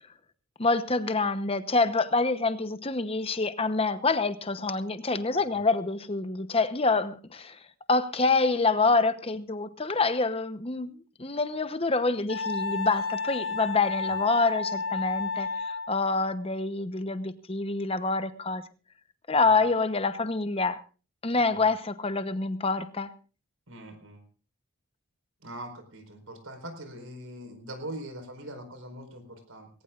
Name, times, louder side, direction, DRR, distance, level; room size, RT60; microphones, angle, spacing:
voice 1, 0.6-7.6 7.9-18.6 19.3-20.8 21.2-23.1, left 3 dB, 25° left, 0.9 m, -26 dB
Wind instrument woodwind instrument, 12.3-15.9, left 4 dB, 65° left, 3.6 m, -31 dB
voice 2, 23.7-24.2 25.4-29.7, right 1 dB, 70° right, 4.6 m, -42 dB
20.0 x 18.0 x 2.5 m
head